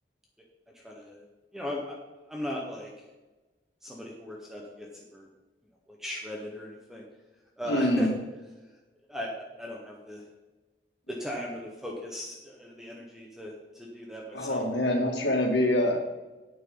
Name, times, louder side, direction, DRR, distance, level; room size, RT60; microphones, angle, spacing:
voice 1, 0.7-1.3 1.5-2.0 2.3-3.0 3.8-5.3 5.9-7.1 7.6-8.1 9.1-10.2 11.1-14.7, equal, 5° right, -2 dB, 1.3 m, -38 dB
voice 2, 7.7-8.1 14.3-16.0, left 1 dB, 90° left, 0 dB, 2.6 m, -25 dB
10.5 x 8.7 x 4.0 m, 1.1 s
head